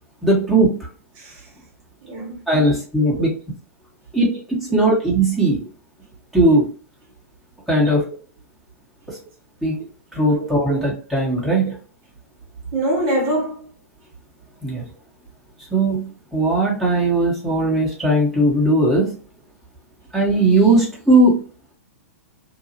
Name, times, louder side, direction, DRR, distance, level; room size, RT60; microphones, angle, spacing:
voice 1, 0.2-0.8 2.5-3.3 4.1-4.3 4.7-5.6 6.3-6.7 7.7-8.0 9.1-9.2 9.6-9.8 10.1-11.7 14.6-14.8 15.7-19.1 20.1-21.3, right 2 dB, ahead, 1.1 m, -18 dB
voice 2, 2.0-2.4 2.6-2.7 3.1-3.2 10.4-10.8 12.7-13.6, right 1 dB, 40° right, 1.1 m, -24 dB
2.7 x 2.3 x 2.7 m
hypercardioid pair, 115°, 8 cm